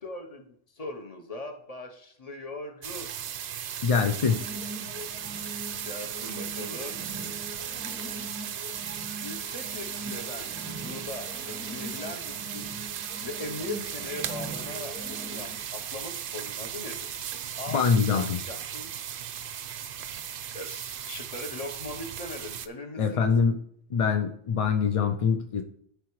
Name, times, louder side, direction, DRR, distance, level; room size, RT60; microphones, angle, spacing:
voice 1, 0.0-0.5 0.7-3.1 5.8-7.0 9.2-12.6 13.2-17.1 17.5-17.8 18.1-18.9 20.5-23.3, left 2 dB, 35° left, 4 dB, 1.0 m, -40 dB
sound 1, 2.8-22.7, right 9 dB, 60° right, 0.6 m, -37 dB
voice 2, 3.8-4.4 17.7-18.4 23.0-23.6 23.9-25.6, left 6 dB, 50° left, 4 dB, 0.4 m, -24 dB
sound 2, 4.2-15.8, right 1 dB, 10° right, 0.8 m, -42 dB
13.0 x 4.8 x 3.1 m, 0.68 s
omnidirectional pair, 1.1 m